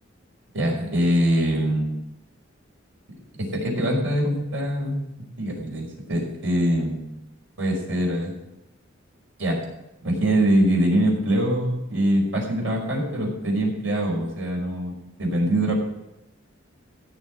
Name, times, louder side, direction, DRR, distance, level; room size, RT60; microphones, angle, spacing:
voice 1, 0.5-2.0 3.3-5.0 5.4-7.1 7.6-8.3 9.4-9.6 10.0-14.9 15.2-15.7, right 1 dB, 85° right, -1 dB, 5.3 m, -23 dB
16.0 x 6.8 x 6.2 m, 0.88 s
head